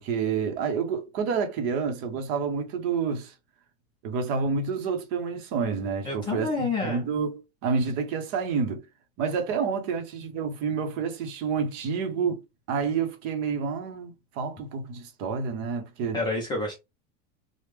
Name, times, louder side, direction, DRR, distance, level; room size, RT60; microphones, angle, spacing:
voice 1, 0.0-3.3 4.0-8.9 9.2-12.4 12.7-16.2, right 5 dB, 40° right, 0.7 m, -29 dB
voice 2, 6.0-7.1 16.1-16.8, left 3 dB, 15° left, 0.3 m, -29 dB
3.3 x 2.1 x 3.1 m
supercardioid pair, 165°, 32 cm